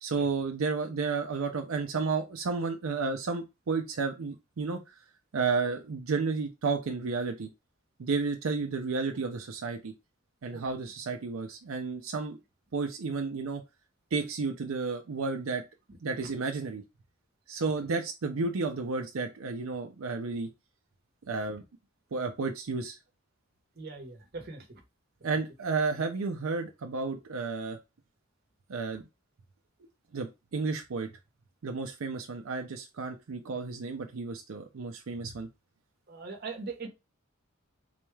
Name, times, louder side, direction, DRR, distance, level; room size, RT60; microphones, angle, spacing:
voice 1, 0.0-4.8 5.3-7.5 8.0-9.9 10.4-12.4 12.7-13.6 14.1-15.6 16.0-16.8 17.5-20.5 21.3-21.6 22.1-23.0 25.2-27.8 28.7-29.0 30.1-31.1 31.6-35.5, right 4 dB, 80° right, 0.5 m, -32 dB
voice 2, 23.8-24.8 36.1-36.9, right 4 dB, 50° right, 0.9 m, -40 dB
4.0 x 2.3 x 3.2 m
head